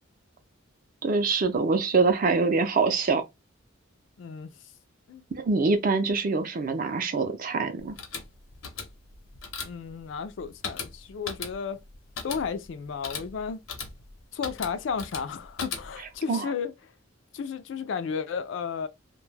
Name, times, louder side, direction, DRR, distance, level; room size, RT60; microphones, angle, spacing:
voice 1, 1.0-3.2 5.4-7.9 16.3-16.5, right 4 dB, 40° right, 0.4 m, -24 dB
voice 2, 4.2-4.5 5.1-5.2 9.6-11.8 12.2-13.6 14.3-16.7 17.3-18.9, left 6 dB, 60° left, 0.3 m, -33 dB
sound 1, 7.8-16.2, left 5 dB, 80° left, 0.7 m, -39 dB
2.2 x 2.0 x 3.2 m
head